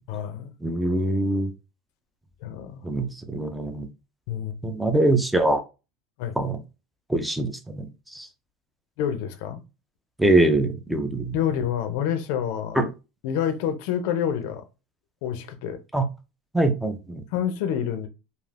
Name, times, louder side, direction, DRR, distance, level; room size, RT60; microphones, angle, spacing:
voice 1, 0.1-0.5 2.4-2.8 4.3-4.6 6.2-6.4 9.0-9.6 11.3-12.8 13.2-14.6 15.2-15.8 17.3-18.1, left 9 dB, 65° left, 0.4 m, -27 dB
voice 2, 0.6-1.5 2.8-3.9 4.6-5.6 6.4-6.6 7.1-8.3 10.2-11.4 12.8-12.9 15.9-16.1 16.5-17.2, right 1 dB, 5° right, 0.4 m, -23 dB
2.4 x 2.4 x 3.3 m
cardioid pair, 165°, 0 cm